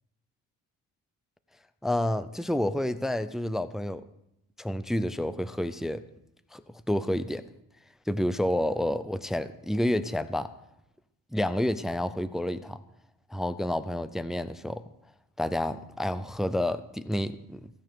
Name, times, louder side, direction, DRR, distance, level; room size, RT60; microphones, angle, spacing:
voice 1, 1.8-4.0 4.6-6.0 6.5-6.6 6.9-7.4 8.1-10.5 11.3-12.8 13.3-14.8 15.4-17.6, left 1 dB, ahead, 13 dB, 0.5 m, -29 dB
15.5 x 9.4 x 6.8 m, 0.79 s
cardioid pair, 155°, 36 cm